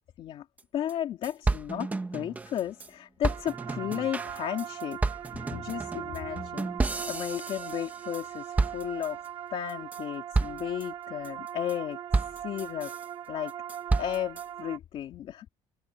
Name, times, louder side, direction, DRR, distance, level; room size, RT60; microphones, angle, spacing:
sound 1, 0.6-0.7 0.9-1.0 1.2-2.9 3.2-8.3 8.6-9.3 9.7-10.0 10.3-10.8 11.2-11.7 12.1-13.1 13.5-14.4, right 3 dB, 15° right, 1.0 m, -31 dB
voice 1, 0.7-5.0 5.3-6.7 7.1-9.2 9.5-12.0 12.4-12.9 13.3-13.5 14.0-15.5, left 11 dB, 50° left, 2.6 m, -34 dB
sound 2, 3.3-14.8, right 10 dB, 40° right, 0.8 m, -40 dB
cardioid pair, 170°, 12 cm